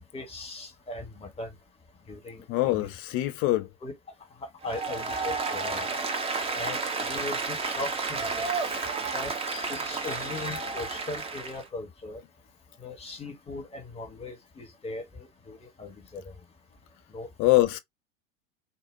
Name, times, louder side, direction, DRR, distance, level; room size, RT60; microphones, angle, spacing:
voice 1, 0.1-1.5 2.1-2.9 3.8-3.9 4.6-5.9 6.5-8.4 9.1-12.2 12.8-16.3 17.1-17.3, left 2 dB, 15° left, 1.2 m, -39 dB
voice 2, 2.5-3.7 8.4-8.9 17.4-17.8, left 17 dB, 35° left, 0.6 m, -25 dB
Applause, 4.6-11.6, right 4 dB, 15° right, 0.7 m, -31 dB
4.2 x 2.4 x 2.6 m
figure-of-eight pair, 85°, 40 cm